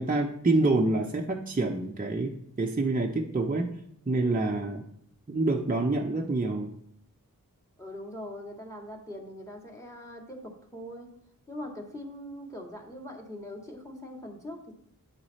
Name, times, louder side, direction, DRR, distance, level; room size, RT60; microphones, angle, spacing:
voice 1, 0.0-3.8 4.1-4.8 5.3-6.8, right 2 dB, 25° right, 1 dB, 0.8 m, -27 dB
voice 2, 4.1-4.7 7.8-11.1 11.5-14.7, left 1 dB, 10° left, 1 dB, 2.2 m, -42 dB
9.1 x 4.7 x 4.3 m, 0.72 s
cardioid pair, 50°, 35 cm